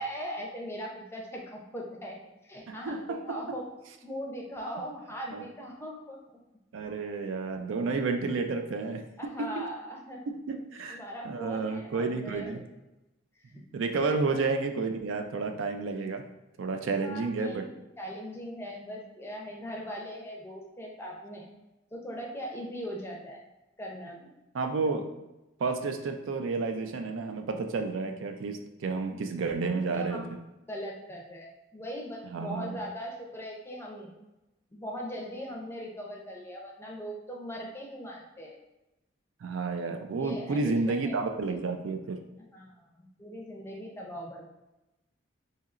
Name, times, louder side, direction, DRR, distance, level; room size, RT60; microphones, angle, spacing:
voice 1, 0.0-2.2 2.4-3.7 4.0-6.2 9.2-10.6 10.9-12.7 13.4-13.5 14.0-14.2 17.0-17.7 18.0-21.5 21.9-23.4 23.8-24.3 29.9-30.3 30.7-34.1 34.7-38.6 40.2-41.1 41.5-41.6 42.4-42.9 43.2-44.5, equal, 10° left, -1 dB, 0.5 m, -40 dB
voice 2, 2.7-3.4 5.3-5.4 6.7-9.6 10.5-11.0 11.2-12.6 13.5-16.2 16.6-17.6 24.5-25.1 25.6-30.3 32.3-32.8 39.4-42.2, right 4 dB, 75° right, 6 dB, 0.4 m, -31 dB
4.2 x 2.8 x 2.4 m, 0.99 s
head